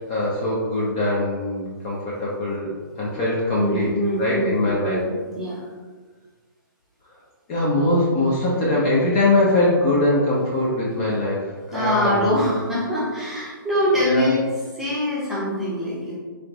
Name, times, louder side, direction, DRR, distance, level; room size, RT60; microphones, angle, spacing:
voice 1, 0.1-3.9 4.2-5.0 7.5-12.5 14.0-14.3, left 2 dB, 25° left, -5 dB, 0.6 m, -22 dB
voice 2, 3.6-5.6 11.7-14.4 14.8-16.2, equal, 5° right, -8 dB, 0.8 m, -24 dB
3.8 x 3.3 x 2.9 m, 1.5 s
hypercardioid pair, 155°, 12 cm